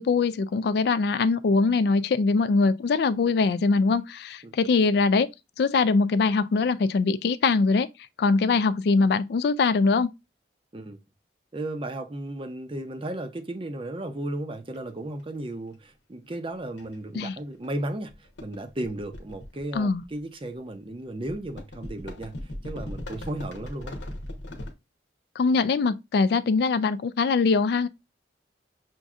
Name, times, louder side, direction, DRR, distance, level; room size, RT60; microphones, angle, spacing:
voice 1, 0.0-5.3 5.6-7.9 8.2-10.1 17.1-17.4 19.7-20.0 25.4-27.9, left 4 dB, 60° left, 0.3 m, -22 dB
voice 2, 11.5-24.0, right 1 dB, 30° right, 0.6 m, -35 dB
sound 1, 14.7-14.8 16.3-16.5 16.8-17.0 17.6-17.8 18.1-20.2 21.3-24.7, left 1 dB, 80° left, 0.9 m, -39 dB
5.9 x 2.6 x 2.4 m
head